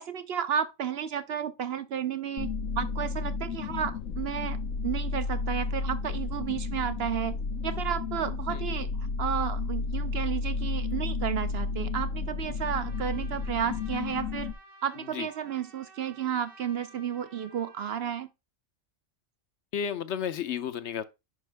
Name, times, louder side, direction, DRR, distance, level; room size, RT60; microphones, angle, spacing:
voice 1, 0.0-4.6 4.8-14.5 14.8-18.3, right 8 dB, 60° right, 0.7 m, -32 dB
sound 1, 2.4-14.5, left 4 dB, 90° left, 1.2 m, -32 dB
voice 2, 8.5-8.9 15.0-15.3 19.7-21.0, left 8 dB, 65° left, 0.9 m, -33 dB
Trumpet, 12.8-18.2, right 3 dB, 80° right, 2.7 m, -54 dB
10.0 x 5.3 x 3.3 m
omnidirectional pair, 1.3 m